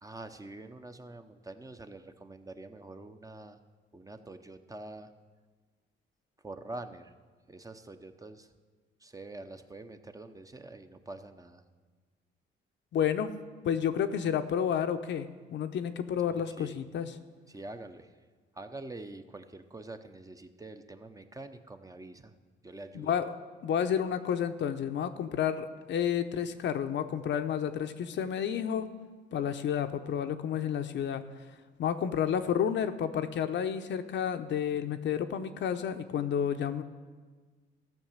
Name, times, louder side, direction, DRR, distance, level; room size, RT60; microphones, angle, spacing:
voice 1, 0.0-3.6 3.9-5.1 6.4-7.1 7.5-8.5 9.0-11.6 16.3-16.8 17.5-18.1 18.5-22.3 22.6-23.2, right 2 dB, 15° right, 8 dB, 0.8 m, -45 dB
voice 2, 12.9-13.3 13.6-17.1 22.9-23.3 23.6-28.9 29.3-31.3 31.8-36.8, left 8 dB, 65° left, 8 dB, 0.8 m, -30 dB
14.5 x 5.9 x 7.3 m, 1.4 s
cardioid pair, 90°, 20 cm